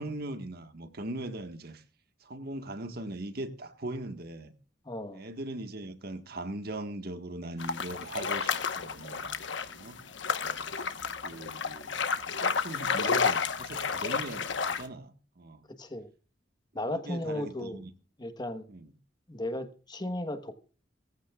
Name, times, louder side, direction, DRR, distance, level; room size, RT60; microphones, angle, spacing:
voice 1, 0.0-1.8 2.2-4.5 5.1-9.3 9.7-10.0 10.4-10.6 11.2-12.0 12.3-15.6 16.9-17.9 18.7-18.9, right 1 dB, 55° right, 1.6 m, -40 dB
voice 2, 4.8-5.2 15.8-16.1 16.7-17.8 18.2-18.6 19.3-20.6, left 1 dB, 25° left, 1.2 m, -35 dB
sound 1, 7.6-14.8, left 5 dB, 70° left, 1.2 m, -31 dB
20.0 x 15.0 x 2.4 m
head